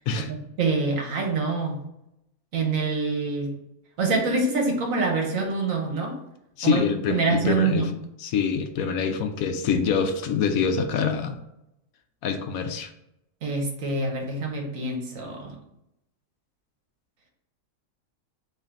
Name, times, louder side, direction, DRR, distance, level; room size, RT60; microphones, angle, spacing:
voice 1, 0.3-1.8 2.5-3.5 4.0-6.1 6.6-6.8 7.1-7.9 13.4-15.6, right 3 dB, 65° right, 0 dB, 1.4 m, -25 dB
voice 2, 6.6-7.9 8.2-11.4 12.2-12.9, left 6 dB, 75° left, 6 dB, 1.0 m, -25 dB
3.8 x 3.2 x 4.4 m, 0.83 s
omnidirectional pair, 1.5 m